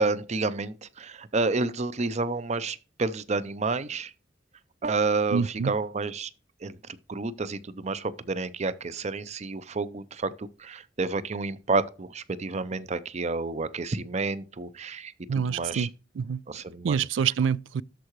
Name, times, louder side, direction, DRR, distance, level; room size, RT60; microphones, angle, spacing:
voice 1, 0.0-4.1 4.8-6.3 6.6-6.7 7.1-15.1 15.5-15.9 16.5-17.0, right 3 dB, 35° right, 0.6 m, -29 dB
voice 2, 5.3-5.7 15.3-16.4 16.8-17.8, right 6 dB, 85° right, 0.4 m, -27 dB
13.0 x 4.7 x 3.1 m
head